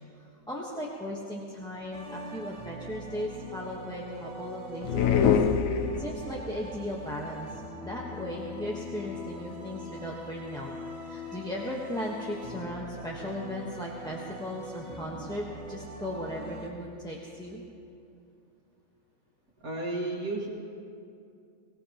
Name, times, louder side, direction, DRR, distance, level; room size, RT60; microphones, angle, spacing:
voice 1, 0.1-5.6 6.0-17.6, left 1 dB, 5° left, -4 dB, 1.1 m, -37 dB
sound 1, 1.9-16.7, equal, 50° right, 1.7 m, -42 dB
sound 2, 4.8-6.4, left 7 dB, 70° left, 1.1 m, -24 dB
voice 2, 19.6-20.5, right 2 dB, 75° right, -4 dB, 2.1 m, -32 dB
24.0 x 17.5 x 3.0 m, 2.5 s
omnidirectional pair, 1.5 m